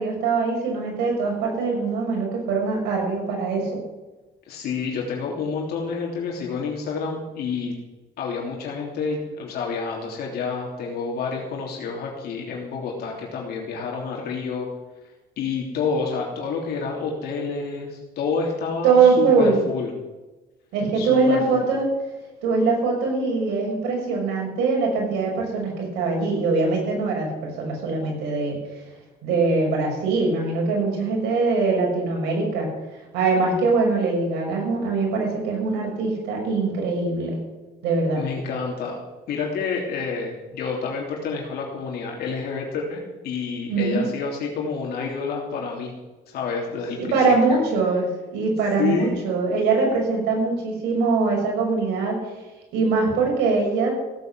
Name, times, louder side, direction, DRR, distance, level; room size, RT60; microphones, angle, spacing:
voice 1, 0.0-3.8 18.8-19.6 20.7-21.9 22.4-28.6 29.2-32.7 33.1-37.4 37.8-38.2 43.7-44.0 47.0-52.2 52.7-53.9, right 4 dB, 90° right, 0 dB, 6.1 m, -22 dB
voice 2, 4.5-7.7 8.2-14.7 15.4-19.9 20.9-21.4 38.1-39.0 39.3-45.9 46.3-47.6 48.8-49.2, left 5 dB, 70° left, -1 dB, 3.2 m, -29 dB
16.0 x 8.2 x 8.0 m, 1.1 s
cardioid pair, 110°, 17 cm